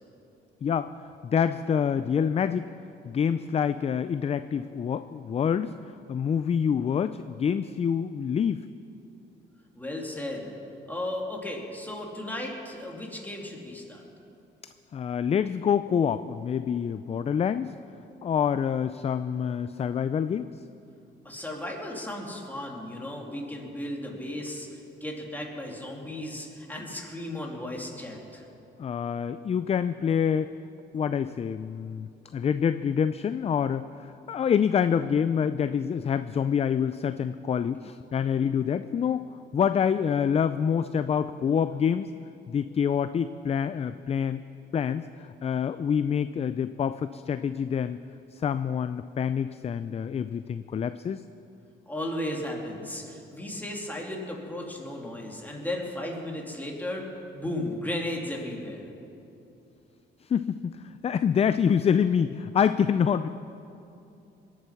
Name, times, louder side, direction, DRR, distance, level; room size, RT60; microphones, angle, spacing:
voice 1, 1.3-2.7 3.1-5.7 6.1-8.6 14.9-17.7 18.2-20.5 28.8-30.5 30.9-33.9 34.3-39.2 39.5-42.1 42.5-44.4 44.7-45.0 45.4-48.0 48.3-51.2 60.3-63.3, left 7 dB, 30° left, 12 dB, 0.4 m, -26 dB
voice 2, 9.7-10.5 10.9-14.0 21.2-28.4 51.9-57.1 57.3-58.8, left 1 dB, 10° left, -1 dB, 2.7 m, -35 dB
21.0 x 8.1 x 5.8 m, 2.7 s
cardioid pair, 90°, 20 cm